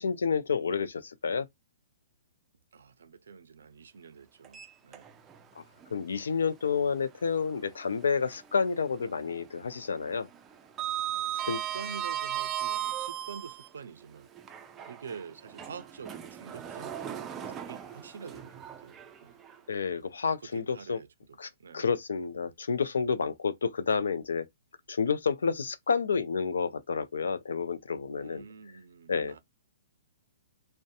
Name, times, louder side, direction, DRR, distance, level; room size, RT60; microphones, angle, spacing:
voice 1, 0.0-1.5 5.6-5.7 5.9-10.3 11.4-11.6 19.7-21.0 21.4-24.5 24.9-28.4 29.1-29.4, left 5 dB, 90° left, 0.4 m, -30 dB
voice 2, 2.7-5.1 11.3-11.5 11.7-14.3 14.9-17.0 17.4-19.4 20.4-21.9 28.2-29.4, right 6 dB, 85° right, 0.4 m, -47 dB
Sliding door, 4.4-5.4 5.8-5.9 7.6-8.7 9.0-9.3 9.6-13.7 14.4-19.6, right 11 dB, 15° right, 0.4 m, -37 dB
2.6 x 2.1 x 2.4 m
hypercardioid pair, 145°, 0 cm